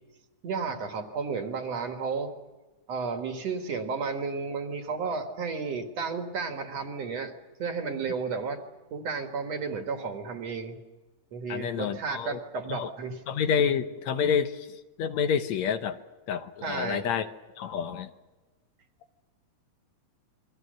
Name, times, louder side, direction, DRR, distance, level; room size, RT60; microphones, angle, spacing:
voice 1, 0.4-2.3 2.9-7.3 7.6-8.6 8.9-10.8 11.3-13.2 16.6-17.0, right 5 dB, 60° right, 5 dB, 3.0 m, -32 dB
voice 2, 11.5-12.4 12.7-12.9 13.3-14.7 15.0-16.0 16.3-17.3 17.6-18.1, left 7 dB, 70° left, 9 dB, 2.2 m, -28 dB
28.0 x 23.5 x 6.7 m, 1.2 s
omnidirectional pair, 3.4 m